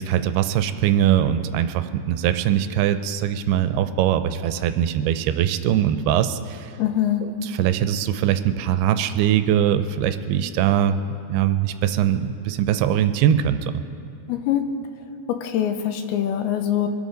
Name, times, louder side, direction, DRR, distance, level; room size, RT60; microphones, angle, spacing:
voice 1, 0.0-6.7 7.2-11.0 11.3-13.8, right 10 dB, 85° right, 10 dB, 2.6 m, -21 dB
voice 2, 6.8-7.2 14.3-14.6 15.3-16.9, left 11 dB, 85° left, 7 dB, 2.7 m, -23 dB
24.0 x 12.5 x 3.9 m, 2.6 s
omnidirectional pair, 4.6 m